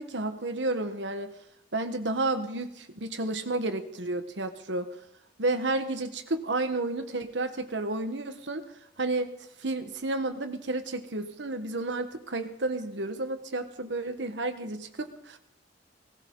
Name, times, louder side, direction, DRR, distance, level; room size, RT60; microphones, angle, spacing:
voice 1, 0.0-1.3 1.7-4.9 5.4-8.6 9.0-9.3 9.6-15.4, right 2 dB, 80° right, 8 dB, 1.3 m, -31 dB
18.0 x 16.0 x 3.9 m, 0.71 s
head